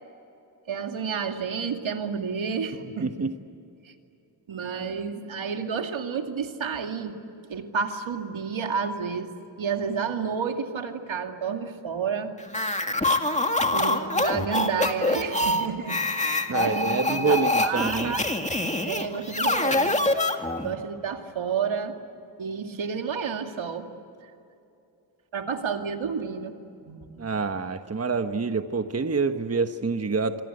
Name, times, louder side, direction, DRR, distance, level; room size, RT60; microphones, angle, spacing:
voice 1, 0.7-3.3 3.8-3.9 4.5-7.2 7.5-9.3 9.6-12.3 13.7-17.4 17.6-18.2 18.8-20.0 20.6-21.9 22.4-23.9 24.2-24.3 25.3-26.5 26.8-27.2, right 6 dB, 75° right, 5 dB, 2.5 m, -30 dB
voice 2, 3.0-3.3 16.5-18.2 27.2-30.4, right 4 dB, 30° right, 8 dB, 1.2 m, -27 dB
sound 1, 12.5-20.8, left 2 dB, 15° left, 2.2 m, -25 dB
26.5 x 25.0 x 8.0 m, 2.7 s
cardioid pair, 70°, 47 cm